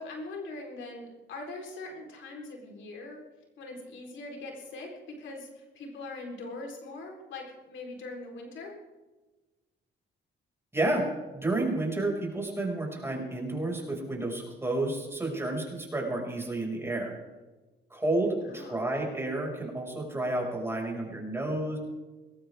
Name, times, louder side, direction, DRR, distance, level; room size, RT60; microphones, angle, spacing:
voice 1, 0.0-3.2 3.6-8.7 18.4-18.9, left 2 dB, 75° left, 0 dB, 4.1 m, -42 dB
voice 2, 10.7-11.0 11.3-17.1 17.9-21.8, right 2 dB, 10° right, -1 dB, 5.9 m, -30 dB
20.5 x 17.5 x 3.6 m, 1.2 s
cardioid pair, 90°, 20 cm